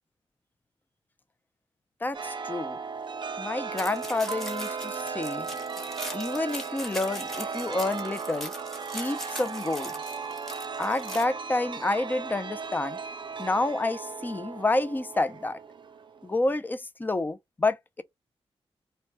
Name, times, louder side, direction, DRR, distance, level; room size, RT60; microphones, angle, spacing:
voice 1, 2.0-2.8 3.4-5.5 6.1-8.5 8.9-10.0 10.8-13.0 13.4-15.6 16.2-18.0, left 2 dB, 20° left, 0.4 m, -29 dB
Chime, 2.1-16.4, right 5 dB, 50° right, 0.4 m, -36 dB
sound 1, 3.8-11.2, equal, ahead, 0.9 m, -41 dB
2.1 x 2.1 x 2.8 m
cardioid pair, 70°, 10 cm